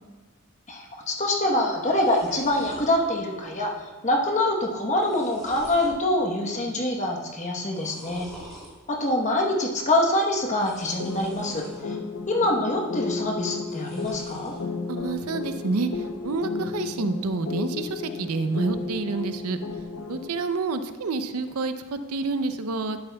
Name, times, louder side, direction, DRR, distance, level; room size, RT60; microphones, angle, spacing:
voice 1, 0.7-8.5 8.9-12.0 12.3-14.5, left 1 dB, 35° left, 1 dB, 1.0 m, -25 dB
sound 1, 1.4-1.5 1.7-2.9 3.4-3.8 4.0-4.1 4.7-6.0 6.4-6.9 7.6-8.7 10.5-11.8 12.3-12.9 13.6-14.6, right 1 dB, ahead, 2.5 m, -47 dB
sound 2, 11.0-20.3, left 4 dB, 75° left, 0.7 m, -33 dB
voice 2, 14.9-19.6 20.1-23.0, right 3 dB, 85° right, 10 dB, 0.5 m, -29 dB
11.5 x 8.7 x 2.3 m, 1.4 s
head